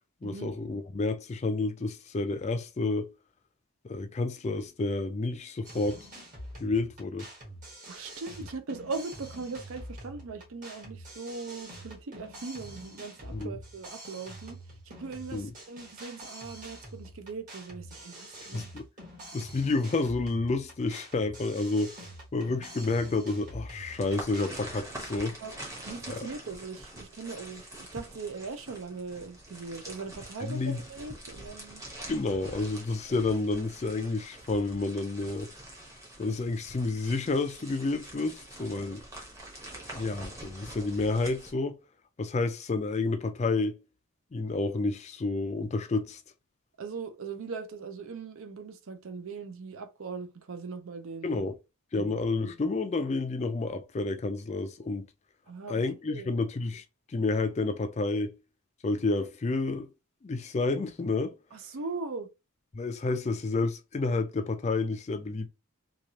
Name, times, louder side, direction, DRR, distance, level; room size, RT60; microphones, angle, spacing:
voice 1, 0.2-3.1 3.8-6.1 6.6-7.3 13.3-13.5 15.3-15.5 18.5-18.9 19.3-22.0 22.3-25.4 26.1-26.2 30.4-30.8 32.1-35.5 36.2-39.0 39.9-41.8 42.2-43.8 44.3-46.2 51.2-51.5 51.9-55.1 55.7-58.4 58.8-59.9 60.2-61.4 62.7-65.5, left 3 dB, 30° left, 0.3 m, -30 dB
sound 1, 5.6-24.7, right 1 dB, 35° right, 1.2 m, -46 dB
voice 2, 7.9-14.6 14.9-18.7 25.4-25.5 25.8-31.8 46.8-51.5 51.9-52.2 55.5-55.8 56.1-56.3 61.5-62.3, right 4 dB, 70° right, 0.5 m, -40 dB
sound 2, 23.9-41.5, right 1 dB, 15° right, 0.8 m, -45 dB
3.2 x 2.4 x 2.7 m
head